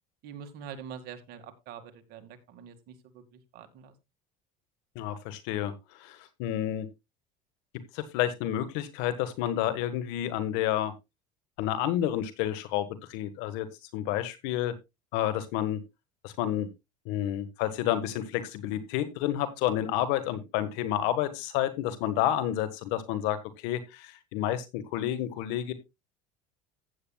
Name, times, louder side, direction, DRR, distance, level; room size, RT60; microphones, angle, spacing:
voice 1, 0.2-3.9, right 7 dB, 60° right, 7 dB, 2.2 m, -45 dB
voice 2, 4.9-6.9 7.9-10.9 11.6-13.7 13.9-14.7 15.1-15.8 16.2-16.7 17.0-25.7, left 12 dB, 75° left, 12 dB, 1.6 m, -30 dB
15.0 x 8.9 x 2.4 m, 0.23 s
supercardioid pair, 105°, 18 cm